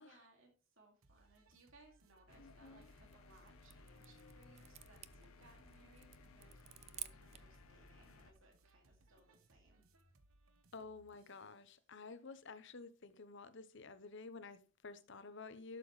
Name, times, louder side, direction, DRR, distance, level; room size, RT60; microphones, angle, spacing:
voice 1, 0.0-9.8, right 2 dB, 70° right, 2.5 m, -67 dB
sound 1, 1.0-11.6, right 2 dB, 85° right, 1.2 m, -70 dB
sound 2, 2.3-8.3, left 3 dB, 90° left, 1.1 m, -61 dB
voice 2, 2.4-2.9 10.7-15.8, left 4 dB, 60° left, 0.9 m, -52 dB
sound 3, 3.0-7.6, right 12 dB, 30° right, 0.4 m, -54 dB
12.0 x 6.8 x 3.2 m
head